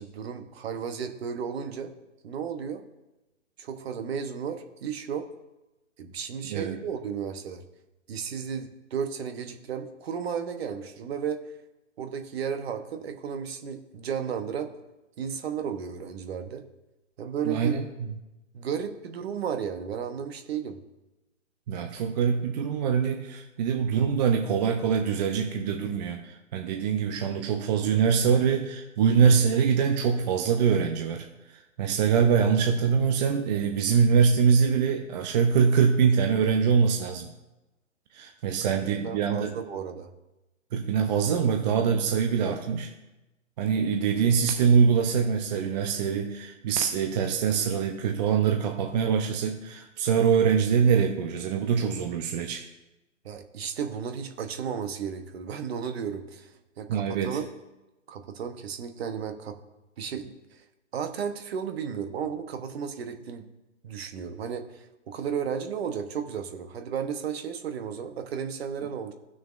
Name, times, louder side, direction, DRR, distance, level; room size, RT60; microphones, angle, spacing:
voice 1, 0.0-1.9 2.2-2.9 3.6-5.3 6.0-7.6 8.1-11.4 12.0-14.7 15.2-16.6 17.2-17.8 18.5-20.8 38.9-40.1 42.4-42.6 53.2-57.4 58.1-59.6 60.0-60.6 60.9-63.4 63.8-69.1, right 7 dB, 50° right, 7 dB, 1.1 m, -34 dB
voice 2, 6.5-6.8 17.4-17.8 21.7-37.3 38.1-39.6 40.7-42.9 43.6-52.6 56.9-57.4, right 6 dB, 35° right, 4 dB, 0.7 m, -24 dB
17.0 x 6.3 x 2.5 m, 0.99 s
hypercardioid pair, 135°, 39 cm